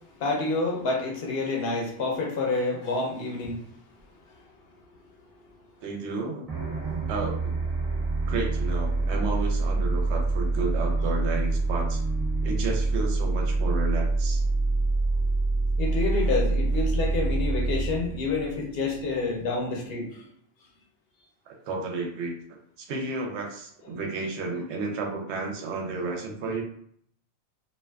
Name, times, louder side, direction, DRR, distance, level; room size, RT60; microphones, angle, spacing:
voice 1, 0.2-3.6 5.4-5.5 15.8-20.2, left 3 dB, 60° left, -1 dB, 0.8 m, -28 dB
voice 2, 5.8-6.4 7.1-7.6 8.3-12.0 12.4-14.4 21.5-22.4 22.8-26.6, right 3 dB, 70° right, 1 dB, 0.8 m, -32 dB
sound 1, 6.5-19.2, right 3 dB, 40° right, 0.7 m, -26 dB
2.4 x 2.3 x 2.2 m, 0.66 s
omnidirectional pair, 1.3 m